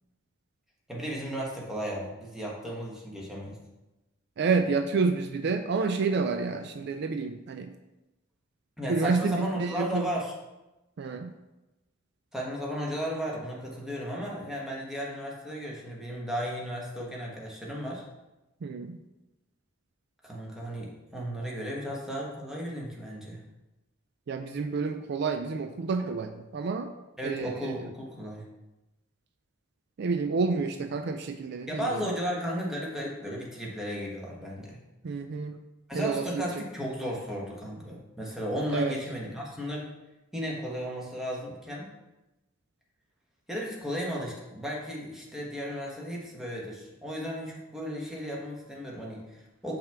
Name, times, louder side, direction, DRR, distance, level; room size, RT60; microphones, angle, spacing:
voice 1, 0.9-3.6 8.8-10.3 12.3-18.0 20.2-23.4 27.2-28.4 31.7-34.8 35.9-39.9 40.3-41.9 43.5-49.8, equal, ahead, -4 dB, 1.2 m, -35 dB
voice 2, 4.4-7.7 8.9-10.1 11.0-11.3 18.6-19.0 24.3-26.9 27.2-27.9 30.0-32.1 35.0-35.6 35.9-36.6 38.7-39.0, right 4 dB, 55° right, 7 dB, 0.4 m, -29 dB
5.5 x 3.5 x 5.8 m, 1.0 s
head